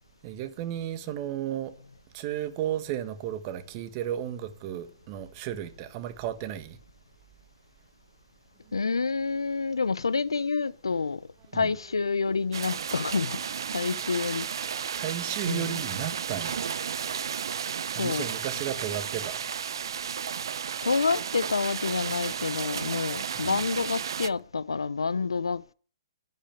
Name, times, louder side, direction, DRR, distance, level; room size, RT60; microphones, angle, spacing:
voice 1, 0.2-1.7 2.1-6.8 11.5-11.7 14.9-16.6 17.9-19.4 23.4-23.6, right 11 dB, 35° right, 1.5 m, -34 dB
voice 2, 8.7-11.2 11.5-13.4 13.7-14.5 15.4-15.8 18.0-18.3 20.8-25.7, left 4 dB, 80° left, 0.7 m, -28 dB
sound 1, 12.5-24.3, right 7 dB, 65° right, 0.7 m, -33 dB
11.5 x 10.5 x 6.8 m
figure-of-eight pair, 125°, 3 cm